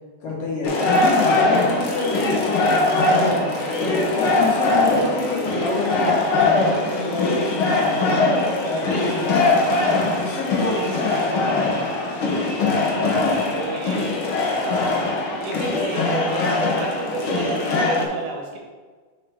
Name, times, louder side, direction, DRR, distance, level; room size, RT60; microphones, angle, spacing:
voice 1, 0.2-3.6 4.0-8.3 8.7-9.6 10.2-11.8, left 3 dB, 55° left, -3 dB, 2.1 m, -28 dB
sound 1, 0.6-18.0, left 2 dB, 75° left, 1.2 m, -21 dB
voice 2, 3.2-3.7 12.7-14.1 14.4-15.1 15.4-18.6, right 3 dB, 70° right, 0 dB, 2.5 m, -32 dB
6.5 x 5.4 x 3.5 m, 1.4 s
omnidirectional pair, 3.7 m